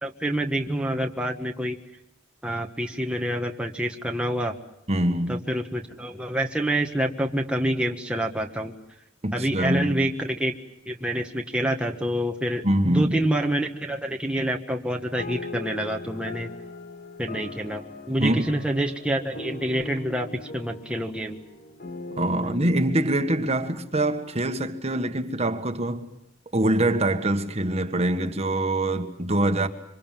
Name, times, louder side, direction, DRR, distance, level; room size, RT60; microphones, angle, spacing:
voice 1, 0.0-1.8 2.4-4.5 5.3-8.7 9.3-10.5 10.9-16.5 17.2-21.4 22.3-22.5, right 1 dB, 5° right, 1.5 m, -27 dB
voice 2, 4.9-5.4 9.2-10.1 12.6-13.2 18.2-18.5 22.2-26.1 26.5-29.7, right 1 dB, 35° right, 1.6 m, -24 dB
sound 1, 15.2-24.9, left 3 dB, 50° left, 1.9 m, -40 dB
26.5 x 25.0 x 7.6 m
head